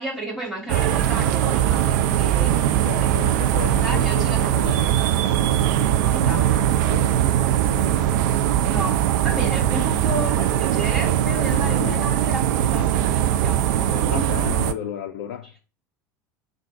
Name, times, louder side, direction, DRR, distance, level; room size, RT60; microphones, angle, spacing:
voice 1, 0.0-3.2 3.8-4.8 6.1-6.4 8.6-14.5, right 1 dB, 5° right, 2.2 m, -32 dB
sound 1, 0.7-14.7, right 11 dB, 60° right, 0.4 m, -20 dB
voice 2, 2.8-4.9 5.7-8.3 11.5-12.1 14.1-15.5, left 11 dB, 60° left, 0.4 m, -34 dB
3.7 x 2.5 x 4.4 m
figure-of-eight pair, 70°, 11 cm